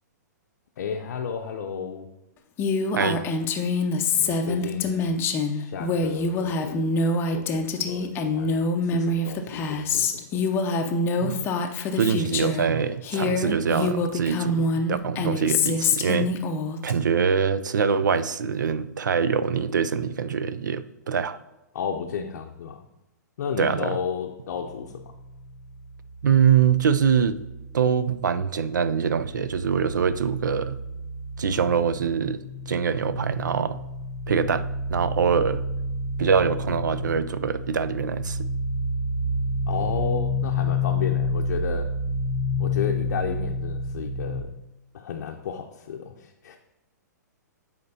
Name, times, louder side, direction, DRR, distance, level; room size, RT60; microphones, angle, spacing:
voice 1, 0.8-2.1 4.2-6.9 7.2-10.5 21.7-22.9 23.4-25.0 39.7-41.9 42.6-44.5 44.9-46.6, left 7 dB, 65° left, 2 dB, 0.6 m, -33 dB
Female speech woman speaking, 2.6-12.7 13.0-16.9, left 3 dB, 25° left, 0.5 m, -25 dB
voice 2, 11.9-16.3 16.8-21.4 23.6-24.0 26.2-27.4 27.7-30.8 31.4-32.4 32.7-33.8 34.3-35.6 36.2-38.4, right 6 dB, 85° right, 14 dB, 0.4 m, -24 dB
sound 1, 24.5-28.3 28.6-44.4, left 2 dB, 25° right, 2.3 m, -30 dB
9.4 x 4.4 x 2.7 m, 0.98 s
hypercardioid pair, 130°, 10 cm